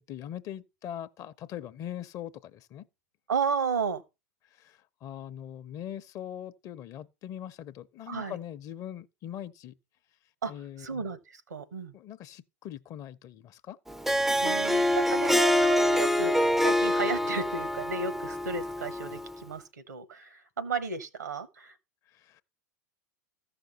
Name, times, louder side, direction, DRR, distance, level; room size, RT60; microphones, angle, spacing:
voice 1, 0.1-2.8 4.5-9.7 10.5-10.9 11.9-13.8 22.1-22.4, left 10 dB, 40° left, 0.7 m, -41 dB
voice 2, 3.3-4.0 8.1-8.4 10.4-10.5 10.8-11.9 14.4-21.8, right 5 dB, 85° right, 1.1 m, -33 dB
Harp, 13.9-19.3, left 1 dB, 5° right, 0.4 m, -25 dB
14.5 x 5.8 x 4.0 m
hypercardioid pair, 95°, 9 cm